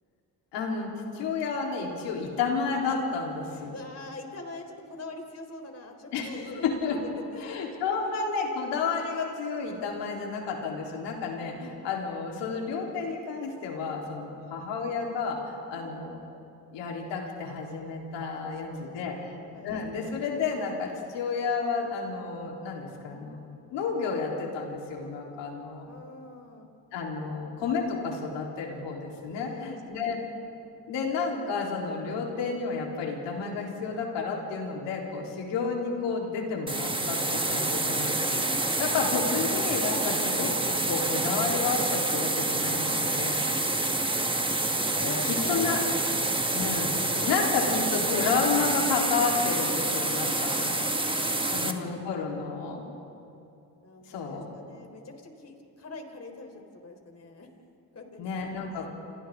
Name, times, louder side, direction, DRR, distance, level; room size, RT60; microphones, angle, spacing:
voice 1, 0.5-3.7 6.1-7.0 7.4-16.2 16.7-19.4 19.6-23.4 23.7-25.9 26.9-30.2 30.9-43.4 44.9-45.8 46.5-47.0 47.2-50.8 51.5-52.8 54.1-54.4 58.2-58.9, left 5 dB, 85° left, -1 dB, 4.0 m, -31 dB
voice 2, 3.7-6.6 15.7-16.0 18.3-19.7 25.9-26.7 29.3-30.2 37.6-37.8 38.9-39.0 43.7-44.4 44.9-46.4 47.1-47.4 50.4-52.1 53.8-57.5 57.9-58.2 58.7-58.8, left 2 dB, 35° left, 3 dB, 4.1 m, -44 dB
sound 1, 36.7-51.7, right 2 dB, 10° right, 1.7 m, -27 dB
29.5 x 27.0 x 3.9 m, 2.7 s
supercardioid pair, 75°, 42 cm